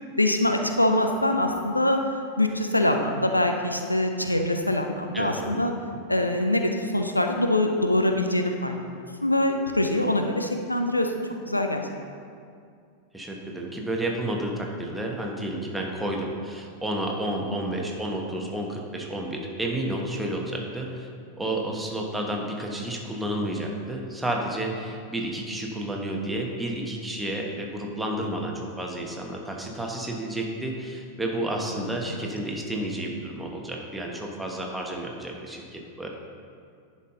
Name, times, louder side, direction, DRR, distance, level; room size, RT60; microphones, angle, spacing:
voice 1, 0.2-2.0 2.4-5.7 6.1-8.8 9.2-11.1 11.5-11.8 32.1-32.3, left 1 dB, 85° left, 4 dB, 0.5 m, -24 dB
voice 2, 5.1-5.6 13.1-21.1 21.4-36.1, right 1 dB, 5° right, 0 dB, 1.1 m, -31 dB
10.5 x 5.4 x 3.8 m, 2.3 s
figure-of-eight pair, 90°, 0 cm